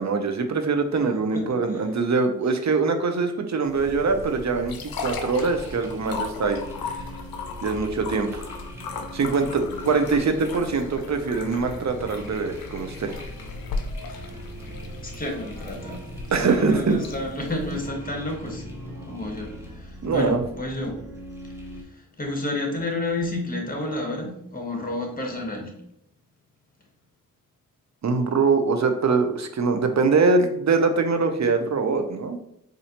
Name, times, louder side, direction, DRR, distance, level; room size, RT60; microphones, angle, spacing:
voice 1, 0.0-6.6 6.9-7.0 7.6-8.5 9.1-13.2 16.3-17.0 20.0-20.4 28.0-32.4, right 4 dB, 50° right, 7 dB, 0.6 m, -23 dB
voice 2, 1.3-1.9 14.1-14.4 15.0-18.7 19.0-21.0 21.7-25.7, left 1 dB, 25° left, 1 dB, 1.2 m, -31 dB
sound 1, 3.7-17.9, left 4 dB, 85° left, 0.5 m, -37 dB
sound 2, 3.7-21.8, equal, 5° right, 0.9 m, -42 dB
sound 3, 10.9-19.8, equal, 75° right, 1.1 m, -43 dB
4.2 x 2.6 x 2.8 m, 0.74 s
cardioid pair, 50°, 35 cm